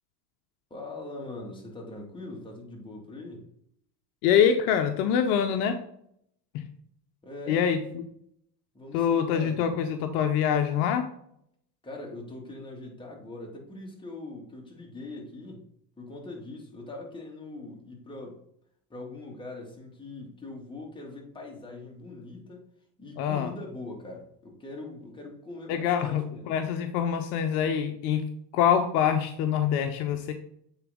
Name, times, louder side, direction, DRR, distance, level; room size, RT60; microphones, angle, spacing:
voice 1, 0.7-3.5 7.2-7.6 8.7-9.8 11.8-15.7 16.0-18.4 18.9-22.6 23.0-26.5, left 2 dB, 10° left, -1 dB, 2.1 m, -42 dB
voice 2, 4.2-5.8 6.5-6.6 7.5-8.0 8.9-11.1 23.2-23.5 25.7-28.2 28.5-30.3, left 8 dB, 65° left, 7 dB, 0.8 m, -25 dB
8.1 x 4.0 x 3.6 m, 0.70 s
hypercardioid pair, 100°, 50 cm